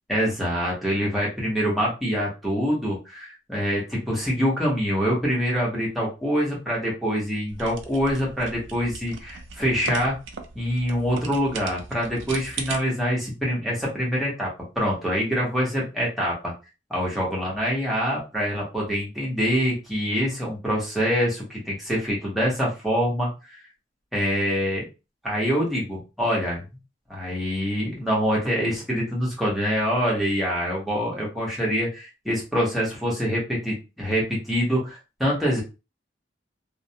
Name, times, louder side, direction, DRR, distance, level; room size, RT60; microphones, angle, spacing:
voice 1, 0.1-10.2 10.5-14.5 14.8-16.5 16.9-23.6 24.1-24.8 25.2-26.6 27.1-35.6, equal, ahead, -5 dB, 0.9 m, -25 dB
sound 1, 7.5-12.8, right 4 dB, 90° right, 0.4 m, -38 dB
2.4 x 2.1 x 2.7 m, 0.29 s
head